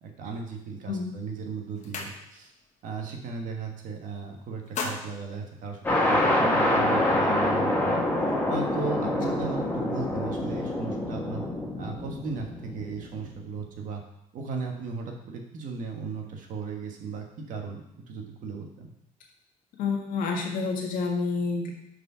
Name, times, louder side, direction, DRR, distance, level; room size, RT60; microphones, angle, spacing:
voice 1, 0.0-2.5 2.8-8.0 8.5-11.4 11.8-14.0 14.3-17.8 18.1-18.9, right 4 dB, 70° right, 2 dB, 1.5 m, -36 dB
sound 1, 1.1-1.2 1.5-2.6 3.0-3.3 3.6-4.1 4.5-6.3, left 4 dB, 60° left, 1.1 m, -38 dB
sound 2, 5.8-13.4, left 1 dB, 15° left, 1.7 m, -26 dB
voice 2, 19.8-21.7, left 4 dB, 80° left, 1 dB, 1.6 m, -28 dB
6.4 x 5.1 x 5.6 m, 0.79 s
cardioid pair, 150°, 14 cm